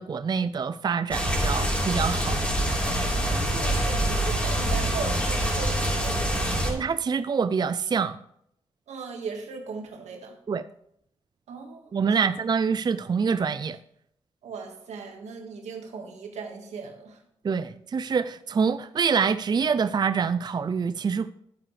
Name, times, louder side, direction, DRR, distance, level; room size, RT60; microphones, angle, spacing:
voice 1, 0.0-2.4 6.6-8.2 10.5-10.6 11.9-13.8 17.4-21.3, right 6 dB, 40° right, 13 dB, 0.4 m, -26 dB
sound 1, 1.1-6.7, right 1 dB, 10° left, 3.9 m, -25 dB
voice 2, 3.3-6.6 8.9-10.3 11.5-12.4 14.4-17.2, right 5 dB, 90° right, 3 dB, 1.8 m, -38 dB
11.5 x 9.3 x 3.3 m, 0.73 s
cardioid pair, 55°, 11 cm